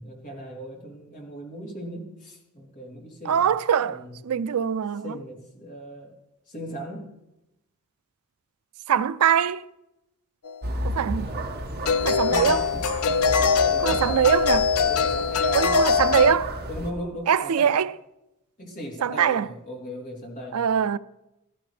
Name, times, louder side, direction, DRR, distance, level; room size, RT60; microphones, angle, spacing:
voice 1, 0.0-3.5 3.8-4.2 5.0-6.2 6.5-7.2 11.0-11.5 11.8-14.3 14.8-17.8 18.6-20.6, equal, 35° left, 3.4 m, -37 dB
voice 2, 3.3-5.0 8.9-9.6 10.9-11.3 12.1-12.6 13.8-14.6 15.5-16.5 17.3-17.9 19.0-19.4 20.5-21.0, right 8 dB, 90° right, 0.4 m, -22 dB
sound 1, 10.5-10.6 11.8-16.4, left 5 dB, 85° left, 0.6 m, -22 dB
sound 2, 10.6-16.9, equal, 50° right, 1.7 m, -33 dB
16.0 x 13.0 x 3.3 m
head